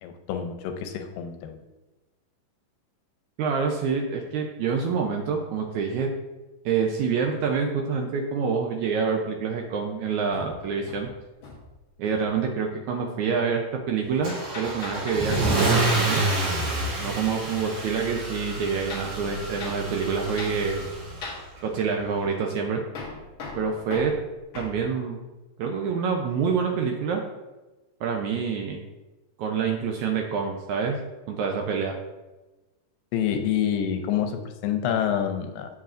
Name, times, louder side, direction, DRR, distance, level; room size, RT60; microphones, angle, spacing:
voice 1, 0.0-1.6 33.1-35.7, left 9 dB, 85° left, 5 dB, 2.4 m, -27 dB
voice 2, 3.4-6.1 6.7-11.1 12.0-16.2 17.0-20.8 21.6-22.8 23.5-24.2 24.6-25.2 25.6-27.2 28.0-28.8 29.4-31.0 31.3-32.0, right 5 dB, 75° right, 2 dB, 1.7 m, -27 dB
Hammer, 10.3-11.8 12.1-12.4 14.3-16.4 18.9-19.1 19.6-19.8 20.4-20.6 21.2-21.5 22.9-24.8, left 3 dB, 65° left, 1.2 m, -39 dB
Car / Engine starting / Accelerating revving vroom, 14.2-21.3, right 2 dB, 55° right, 3.0 m, -28 dB
8.5 x 7.3 x 2.5 m, 1.1 s
omnidirectional pair, 3.9 m